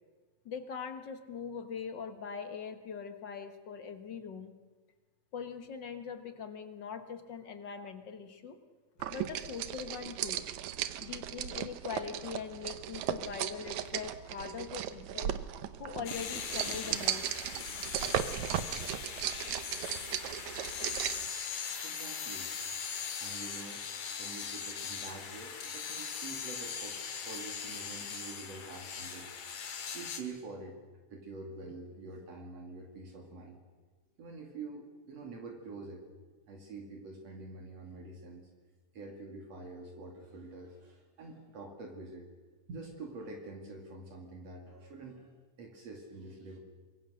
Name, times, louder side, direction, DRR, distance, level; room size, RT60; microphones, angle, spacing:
voice 1, 0.5-4.5 5.3-8.6 9.1-10.5 11.0-15.3 15.8-17.3, left 6 dB, 45° left, 8 dB, 1.8 m, -42 dB
sound 1, 9.0-21.3, right 11 dB, 80° right, 2.3 m, -36 dB
sound 2, 16.1-30.2, left 6 dB, 70° left, 3.2 m, -40 dB
voice 2, 21.8-22.5 23.2-23.8 24.2-29.4 29.9-30.8 31.1-33.6 34.2-36.0 36.5-38.5 38.9-42.2 42.7-46.6, right 3 dB, 60° right, 1 dB, 3.5 m, -46 dB
25.5 x 22.5 x 6.5 m, 1.4 s
omnidirectional pair, 3.3 m